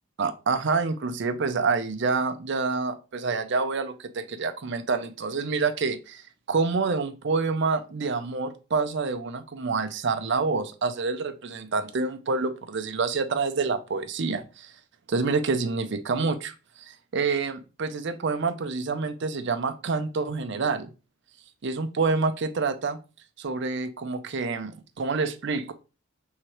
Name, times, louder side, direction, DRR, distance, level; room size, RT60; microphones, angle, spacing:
voice 1, 0.2-14.7 15.1-20.9 21.6-23.0 23.4-25.7, right 4 dB, 55° right, 10 dB, 0.5 m, -27 dB
4.6 x 3.6 x 3.0 m, 0.33 s
head